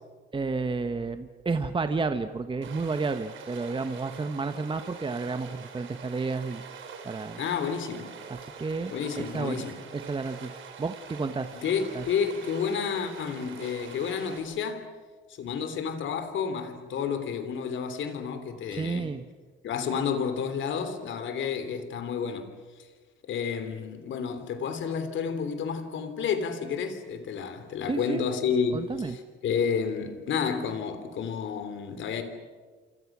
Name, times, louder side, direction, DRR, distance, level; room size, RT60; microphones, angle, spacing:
voice 1, 0.3-6.6 7.0-7.4 8.3-8.9 9.2-11.5 11.9-12.0 18.7-19.2 27.9-28.3 28.7-29.1, right 4 dB, 25° right, 1.2 m, -31 dB
Stream, 2.6-14.4, right 6 dB, 75° right, 4.4 m, -45 dB
voice 2, 7.4-8.1 8.9-9.8 11.5-14.9 15.4-19.1 19.6-22.5 23.3-32.2, left 6 dB, 75° left, 3.3 m, -30 dB
27.5 x 27.5 x 6.2 m
cardioid pair, 90°, 20 cm